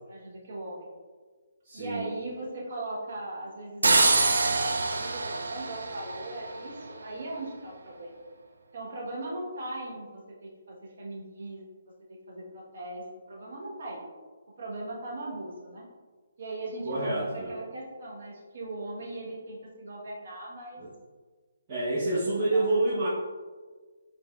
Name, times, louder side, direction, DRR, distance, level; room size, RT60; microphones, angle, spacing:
voice 1, 0.1-0.9 1.7-4.1 4.4-8.1 8.7-11.6 12.3-14.0 14.6-15.9 16.4-17.1 17.5-20.8 22.5-23.0, right 2 dB, 55° right, -2 dB, 1.1 m, -39 dB
voice 2, 1.6-2.1 16.8-17.5 20.8-20.9 21.7-23.1, right 2 dB, 35° right, -10 dB, 1.0 m, -28 dB
sound 1, 3.8-6.7, right 3 dB, 75° right, 0.4 m, -25 dB
5.2 x 3.3 x 2.3 m, 1.4 s
figure-of-eight pair, 145°, 0 cm